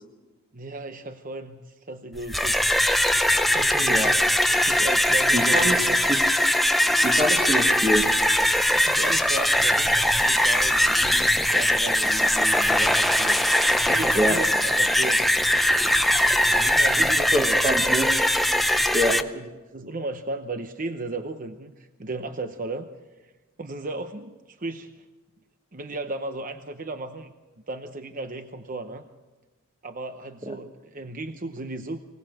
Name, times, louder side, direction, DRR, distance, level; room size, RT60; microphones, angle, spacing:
voice 1, 0.5-3.3 3.5-4.2 4.7-6.0 8.7-13.4 13.9-15.2 16.5-17.8 18.5-22.9 23.2-23.3 23.6-25.0 25.7-27.3 27.7-29.1 29.8-32.0, right 2 dB, 40° right, 8 dB, 0.9 m, -35 dB
sound 1, 2.2-19.2, left 1 dB, ahead, 0.7 m, -21 dB
voice 2, 5.3-6.2 7.0-8.1 14.1-14.4 17.0-18.1 18.9-19.2 30.4-30.6, equal, 20° right, 1 dB, 1.4 m, -25 dB
25.0 x 18.0 x 7.7 m, 1.2 s
head